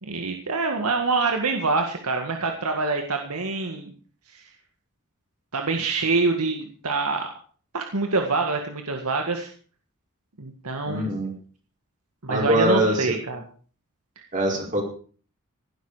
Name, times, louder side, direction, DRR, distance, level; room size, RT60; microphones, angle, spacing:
voice 1, 0.0-3.9 4.3-4.4 5.5-7.3 7.7-9.5 10.4-11.1 12.2-13.4, right 3 dB, 90° right, 4 dB, 1.9 m, -25 dB
voice 2, 10.9-11.3 12.3-13.1 14.3-14.8, right 1 dB, 35° right, 0 dB, 5.1 m, -23 dB
16.5 x 12.0 x 5.0 m, 0.43 s
head